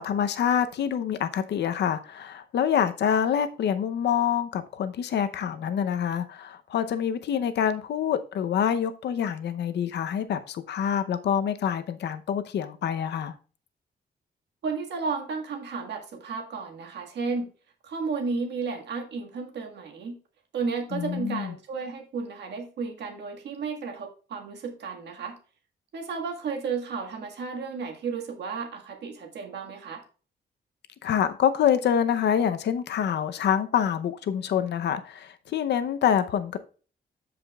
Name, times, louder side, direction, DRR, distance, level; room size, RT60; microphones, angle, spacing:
voice 1, 0.0-13.3 20.9-21.6 31.0-36.6, left 8 dB, 75° left, 0.7 m, -26 dB
voice 2, 14.6-17.5 17.8-20.2 20.5-25.4 25.9-30.0, right 4 dB, 75° right, 1.7 m, -33 dB
13.0 x 5.1 x 2.3 m
wide cardioid pair, 150°, 18 cm